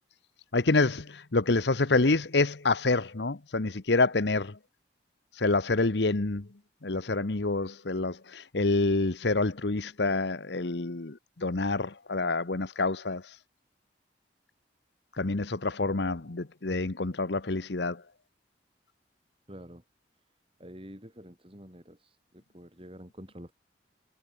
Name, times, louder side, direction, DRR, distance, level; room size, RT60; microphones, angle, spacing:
voice 1, 0.5-4.5 5.4-6.4 6.8-13.2 15.2-18.0, left 3 dB, 70° left, 1.1 m, -27 dB
voice 2, 19.5-19.8 20.6-23.5, equal, 30° right, 7.3 m, -48 dB
head